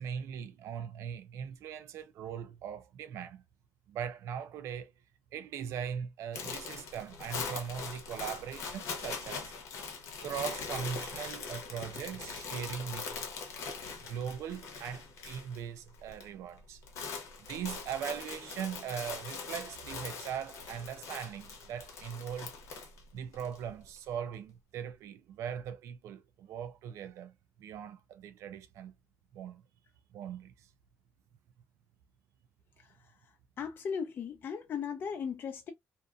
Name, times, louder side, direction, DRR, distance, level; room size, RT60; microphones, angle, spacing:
voice 1, 0.0-3.4 3.9-4.9 5.3-9.5 10.2-13.1 14.1-16.8 17.5-22.5 23.1-27.3 27.6-28.9 29.3-29.6 30.1-30.5, right 8 dB, 80° right, 0.4 m, -40 dB
sound 1, 6.3-15.6 15.9-16.3 16.6-23.6, left 5 dB, 85° left, 0.8 m, -42 dB
voice 2, 33.6-35.7, left 6 dB, 45° left, 0.4 m, -37 dB
2.6 x 2.4 x 2.3 m
cardioid pair, 155°, 5 cm